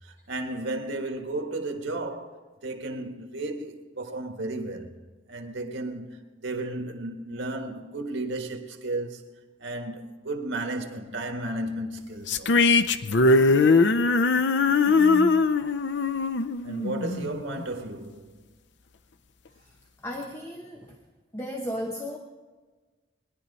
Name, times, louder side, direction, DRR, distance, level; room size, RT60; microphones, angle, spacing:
voice 1, 0.0-5.0 5.3-9.3 9.6-12.8 16.6-18.4, right 2 dB, 85° right, 1.6 m, -34 dB
sound 1, 12.3-17.6, left 3 dB, 70° left, 0.6 m, -21 dB
voice 2, 13.3-13.7 14.9-15.5 20.0-21.0 21.3-22.2, equal, 15° left, 0.9 m, -35 dB
20.5 x 11.0 x 4.1 m
head